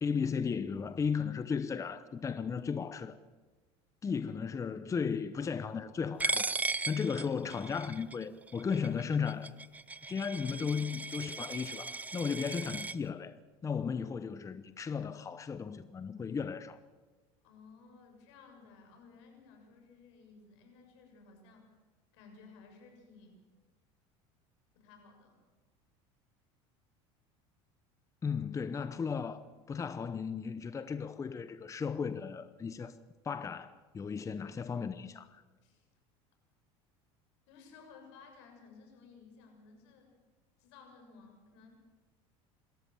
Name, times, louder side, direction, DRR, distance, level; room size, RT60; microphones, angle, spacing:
voice 1, 0.0-3.2 4.0-6.5 6.9-9.5 10.1-13.4 13.6-16.8 28.2-29.4 29.7-32.9 33.2-35.4, left 6 dB, 20° left, 0.9 m, -35 dB
Coin (dropping), 6.2-12.9, right 3 dB, 10° right, 0.6 m, -37 dB
voice 2, 17.4-21.8 22.1-23.5 24.7-25.4 35.6-35.9 37.5-40.1 40.6-41.8, left 4 dB, 80° left, 6.9 m, -57 dB
27.5 x 13.5 x 7.5 m
supercardioid pair, 110°, 14 cm